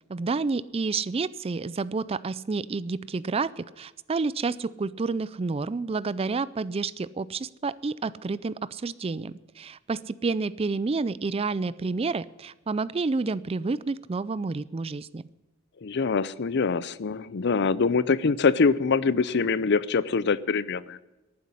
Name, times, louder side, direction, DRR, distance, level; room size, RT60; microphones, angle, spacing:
voice 1, 0.1-15.2, right 4 dB, 30° right, 19 dB, 0.4 m, -29 dB
voice 2, 15.8-21.0, left 4 dB, 55° left, 18 dB, 0.6 m, -24 dB
11.5 x 9.5 x 9.8 m, 1.1 s
head